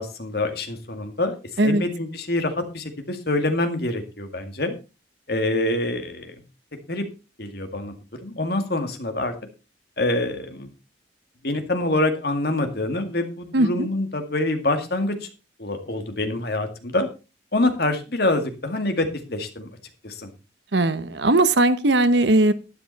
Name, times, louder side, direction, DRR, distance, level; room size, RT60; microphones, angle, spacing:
voice 1, 0.0-1.4 1.6-4.8 5.3-6.4 6.9-7.0 7.4-8.0 8.2-9.3 10.0-10.7 11.4-15.3 15.6-17.1 17.5-19.7 20.0-20.3, left 2 dB, 55° left, 7 dB, 2.1 m, -25 dB
voice 2, 13.5-13.9 20.7-22.5, right 2 dB, 70° right, 13 dB, 1.0 m, -19 dB
12.0 x 9.8 x 4.1 m, 0.29 s
head